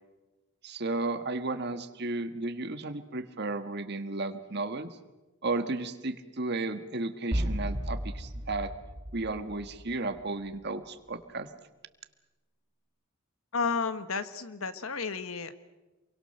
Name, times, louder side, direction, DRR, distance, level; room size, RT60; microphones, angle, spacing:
voice 1, 0.6-4.9 5.4-8.7 9.1-11.5, right 2 dB, 50° right, 9 dB, 1.6 m, -33 dB
sound 1, 7.3-10.2, equal, 30° right, 1.5 m, -34 dB
voice 2, 13.5-15.5, left 5 dB, 85° left, 11 dB, 1.5 m, -32 dB
27.5 x 23.5 x 6.7 m, 1.1 s
head